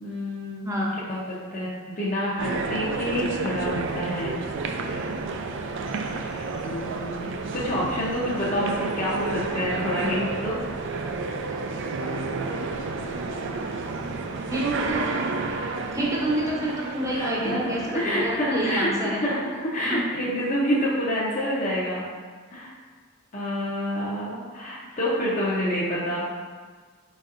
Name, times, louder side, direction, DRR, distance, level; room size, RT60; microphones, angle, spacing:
voice 1, 0.0-0.8 1.1-1.2 1.5-4.4 6.5-10.6 17.1-17.6 17.9-22.1 22.5-22.7 23.3-26.2, equal, 35° left, -7 dB, 0.7 m, -28 dB
voice 2, 0.6-1.0 14.5-15.5 15.9-19.2 19.8-20.0, right 1 dB, 15° right, -3 dB, 0.7 m, -28 dB
sound 1, 2.4-19.0, right 3 dB, 55° right, 0.3 m, -31 dB
5.0 x 4.1 x 2.5 m, 1.5 s
head